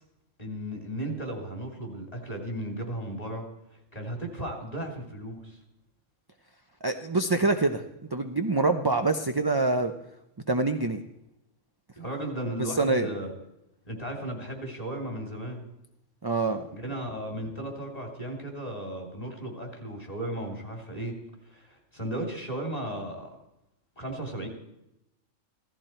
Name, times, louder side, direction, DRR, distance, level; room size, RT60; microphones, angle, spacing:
voice 1, 0.4-3.4 3.7-5.6 12.0-13.3 13.8-15.6 16.7-21.2 21.5-23.4 24.0-24.5, right 1 dB, 30° left, 1 dB, 3.2 m, -35 dB
voice 2, 6.8-7.8 8.1-9.9 10.5-11.0 12.7-13.1 16.2-16.7, right 3 dB, 25° right, 6 dB, 0.6 m, -25 dB
16.5 x 14.0 x 4.4 m, 0.86 s
omnidirectional pair, 1.3 m